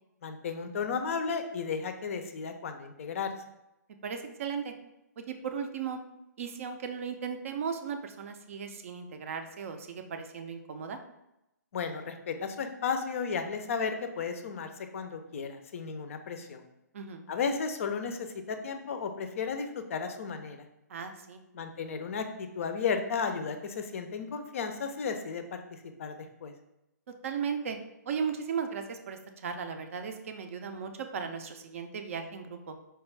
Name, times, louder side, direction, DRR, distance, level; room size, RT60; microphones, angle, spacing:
voice 1, 0.2-3.3 11.7-16.6 17.3-20.6 21.5-26.1 26.4-26.5, left 5 dB, 50° left, 7 dB, 0.4 m, -34 dB
voice 2, 4.0-4.7 5.2-6.0 6.4-11.0 16.9-17.2 20.9-21.4 27.2-27.8 28.1-32.8, right 6 dB, 45° right, 6 dB, 0.4 m, -36 dB
4.4 x 2.3 x 3.2 m, 0.87 s
figure-of-eight pair, 130°, 10 cm